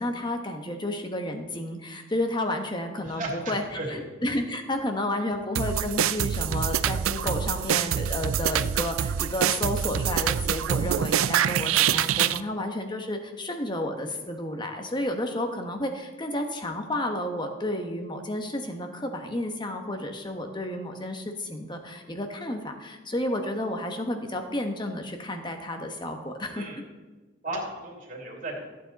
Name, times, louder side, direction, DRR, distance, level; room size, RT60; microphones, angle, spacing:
voice 1, 0.0-26.8, left 1 dB, 20° left, 5 dB, 1.2 m, -31 dB
voice 2, 3.0-4.0 26.5-26.8 27.4-28.6, right 2 dB, 40° right, -2 dB, 2.9 m, -35 dB
sound 1, 5.5-12.4, right 9 dB, 90° right, 0.4 m, -25 dB
14.5 x 8.7 x 4.1 m, 1.2 s
head